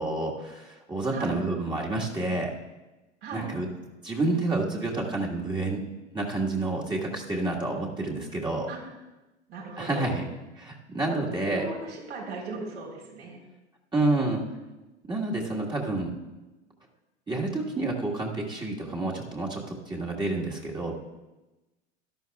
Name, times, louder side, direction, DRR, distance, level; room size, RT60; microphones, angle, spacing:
voice 1, 0.0-2.5 3.3-3.7 4.0-5.8 6.1-8.7 9.8-10.2 10.6-11.7 13.9-14.4 15.1-16.1 17.3-21.0, right 2 dB, 15° right, -3 dB, 1.7 m, -29 dB
voice 2, 1.1-1.4 3.2-3.5 8.7-8.8 9.5-10.2 11.1-13.4, right 3 dB, 70° right, -2 dB, 4.2 m, -37 dB
17.0 x 12.5 x 2.4 m, 1.1 s
figure-of-eight pair, 85°, 35 cm